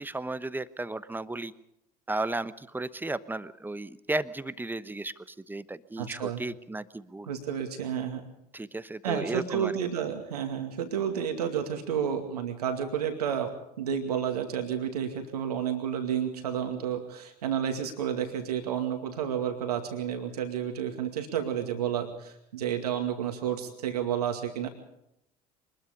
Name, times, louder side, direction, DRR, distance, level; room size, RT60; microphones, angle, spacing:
voice 1, 0.0-1.5 2.1-7.3 8.5-9.7, right 2 dB, 10° right, 14 dB, 1.1 m, -34 dB
voice 2, 6.0-6.4 7.3-8.2 9.0-24.7, right 8 dB, 75° right, 5 dB, 2.3 m, -31 dB
24.5 x 21.0 x 5.2 m, 0.81 s
figure-of-eight pair, 65°, 20 cm